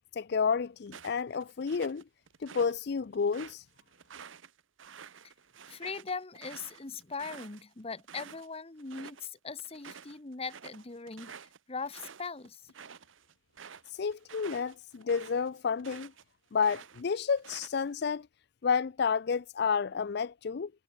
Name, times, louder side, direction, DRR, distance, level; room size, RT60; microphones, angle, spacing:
voice 1, 0.1-2.0 2.4-3.6 13.9-16.1 16.5-18.3 18.6-20.7, left 6 dB, 55° left, 0.4 m, -30 dB
sound 1, 0.9-2.7 3.1-8.5 8.8-9.3 9.6-16.2 16.6-18.0, right 7 dB, 90° right, 1.0 m, -50 dB
voice 2, 5.7-12.6, left 4 dB, 30° left, 1.0 m, -40 dB
head